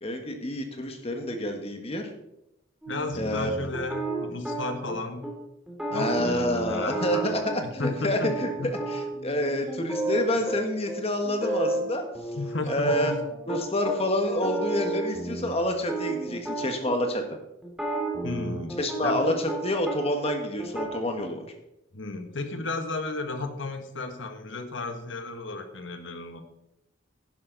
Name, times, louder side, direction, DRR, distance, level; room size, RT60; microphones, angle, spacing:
voice 1, 0.0-2.0 3.2-3.5 5.9-12.0 12.7-13.1 13.5-17.2 18.8-21.4, left 1 dB, 30° left, 5 dB, 1.5 m, -28 dB
sound 1, 2.8-5.0 5.2-5.3 5.7-7.9 8.2-10.6 10.9-11.0 11.2-11.9 12.2-14.0 14.3-17.0 17.6-20.0 20.2-20.9, right 2 dB, 5° right, 2.3 m, -32 dB
voice 2, 2.9-5.2 5.9-8.3 8.6-8.7 12.3-13.2 15.3-15.4 18.2-19.2 21.9-26.4, left 3 dB, 70° left, 6 dB, 1.4 m, -34 dB
11.0 x 11.0 x 4.0 m, 0.86 s
head